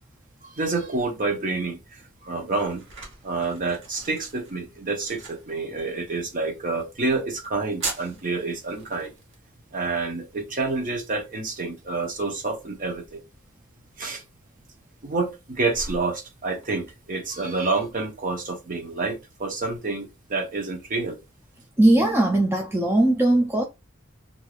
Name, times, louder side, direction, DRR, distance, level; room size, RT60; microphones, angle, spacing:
voice 1, 0.4-2.8 3.2-9.1 9.7-13.2 14.0-14.2 15.0-21.2, right 3 dB, 40° right, 0.7 m, -28 dB
sound 1, 1.8-19.4, right 3 dB, 60° right, 1.0 m, -44 dB
voice 2, 21.8-23.6, right 1 dB, 10° right, 0.4 m, -19 dB
3.2 x 2.6 x 2.3 m
head